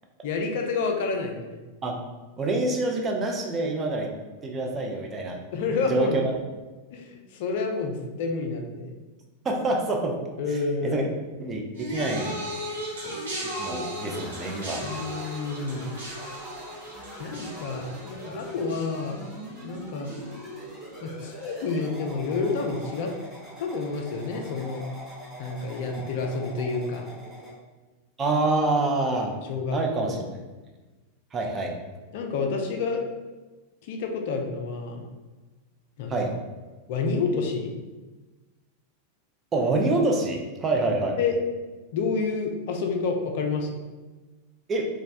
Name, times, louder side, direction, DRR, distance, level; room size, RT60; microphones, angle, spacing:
voice 1, 0.2-1.6 5.5-6.2 6.9-8.9 10.4-11.1 14.8-15.9 17.2-19.2 19.6-20.1 21.0-23.1 23.6-24.8 25.4-27.1 29.5-29.8 30.0-30.2 32.1-33.0 33.8-35.0 36.0-36.2 36.9-37.7 41.2-41.3 41.9-43.8, left 4 dB, 50° left, 3 dB, 0.4 m, -29 dB
voice 2, 2.4-4.1 4.4-5.4 5.9-6.2 9.4-10.2 10.8-11.0 11.4-12.4 13.0-13.1 13.6-14.8 28.2-29.3 29.7-30.3 31.3-31.7 36.1-36.3 39.5-41.2 44.7-44.9, right 2 dB, 20° right, 1 dB, 0.4 m, -26 dB
sound 1, 11.7-21.1 21.4-21.9 22.8-22.9, right 1 dB, 70° right, 0.9 m, -37 dB
sound 2, 13.9-27.5, right 1 dB, 5° right, 0.9 m, -43 dB
3.0 x 2.2 x 2.6 m, 1.2 s
figure-of-eight pair, 90°, 0 cm